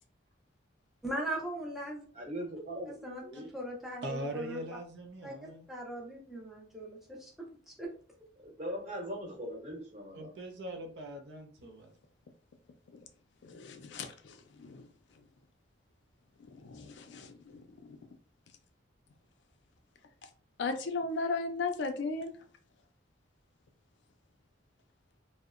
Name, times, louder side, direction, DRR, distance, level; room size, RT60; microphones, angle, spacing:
voice 1, 1.0-2.1 3.0-4.6 5.2-7.9, right 1 dB, ahead, 0.5 m, -40 dB
voice 2, 2.1-3.5 8.4-10.3, equal, 40° right, 1.0 m, -40 dB
voice 3, 4.0-5.7 10.1-11.9, right 1 dB, 65° right, 0.4 m, -41 dB
voice 4, 13.4-14.8 16.4-18.0 20.6-22.3, left 3 dB, 70° left, 0.4 m, -36 dB
2.7 x 2.0 x 2.4 m
head